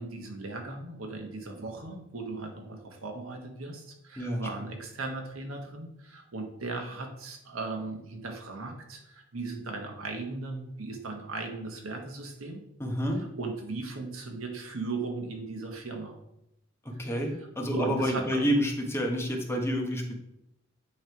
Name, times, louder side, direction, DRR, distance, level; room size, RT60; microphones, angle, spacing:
voice 1, 0.0-12.6 13.0-16.1 17.0-18.5, right 3 dB, 85° right, 3 dB, 1.2 m, -37 dB
voice 2, 12.8-13.2 16.8-20.2, equal, 10° left, 1 dB, 0.9 m, -29 dB
8.8 x 3.2 x 4.6 m, 0.83 s
head